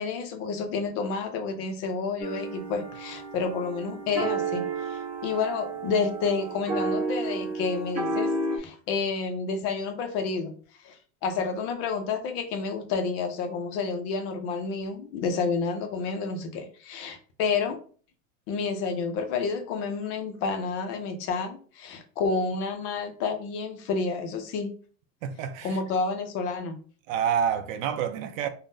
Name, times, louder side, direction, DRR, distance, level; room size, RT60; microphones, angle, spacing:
voice 1, 0.0-10.5 10.8-11.0 11.2-17.8 18.5-24.7 25.6-26.7, left 4 dB, 35° left, 0.4 m, -30 dB
sound 1, 2.2-8.6, right 3 dB, 20° right, 0.7 m, -31 dB
voice 2, 25.2-25.8 27.1-28.5, right 8 dB, 75° right, 0.5 m, -28 dB
3.5 x 2.1 x 2.5 m
supercardioid pair, 150°, 40 cm